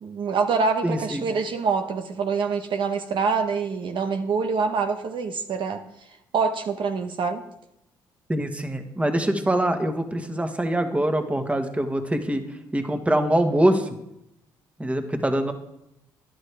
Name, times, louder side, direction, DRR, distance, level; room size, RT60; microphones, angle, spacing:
voice 1, 0.0-5.8 6.3-7.4, right 5 dB, 60° right, 6 dB, 1.0 m, -25 dB
voice 2, 0.8-1.2 8.3-12.4 12.7-13.9 14.8-15.5, right 1 dB, 15° right, 6 dB, 1.5 m, -24 dB
13.0 x 11.0 x 3.5 m, 0.82 s
supercardioid pair, 60°, 10 cm